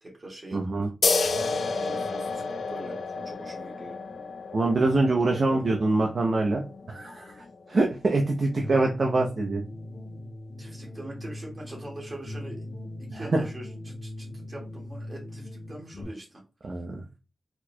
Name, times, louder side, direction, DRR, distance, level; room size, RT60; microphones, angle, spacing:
voice 1, 0.0-0.7 1.8-2.4 2.7-4.0 5.0-5.6 10.6-12.7 13.0-16.4, right 1 dB, 25° right, -2 dB, 2.0 m, -43 dB
voice 2, 0.5-0.9 4.5-6.6 6.9-9.6 13.1-13.4 16.6-17.0, right 2 dB, 45° right, 1 dB, 0.7 m, -25 dB
sound 1, 1.0-8.2, left 4 dB, 70° left, 0.5 m, -31 dB
sound 2, 1.2-16.0, left 1 dB, 40° left, 1.6 m, -42 dB
4.5 x 4.5 x 2.3 m, 0.31 s
wide cardioid pair, 165°, 0 cm